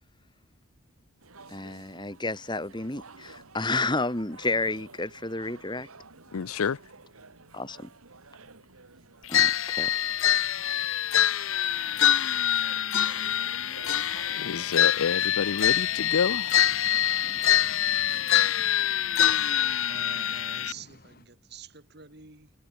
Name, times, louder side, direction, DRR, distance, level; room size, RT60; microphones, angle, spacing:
sound 1, 1.2-20.6, right 4 dB, 90° right, 2.7 m, -51 dB
voice 1, 1.5-5.9 7.5-7.9 9.3-10.0, left 2 dB, 20° left, 2.0 m, -31 dB
voice 2, 6.3-6.8 14.3-16.6, left 6 dB, 90° left, 0.5 m, -29 dB
sound 2, 9.3-20.7, left 10 dB, 70° left, 1.0 m, -25 dB
sound 3, 11.7-21.3, left 2 dB, 45° left, 2.1 m, -52 dB
voice 3, 19.8-22.5, right 6 dB, 50° right, 2.8 m, -47 dB
head